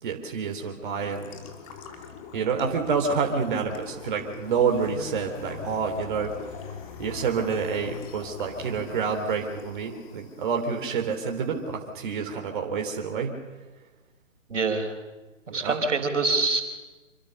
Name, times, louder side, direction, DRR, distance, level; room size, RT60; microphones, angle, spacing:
voice 1, 0.0-1.3 2.3-6.5 7.0-13.3 15.5-15.8, right 5 dB, 40° right, 2 dB, 3.5 m, -28 dB
sound 1, 1.0-11.4, left 6 dB, 25° left, 3.3 m, -43 dB
voice 2, 14.5-14.9 15.5-16.6, right 3 dB, 65° right, 6 dB, 4.6 m, -25 dB
27.5 x 24.5 x 6.9 m, 1.2 s
figure-of-eight pair, 145°, 39 cm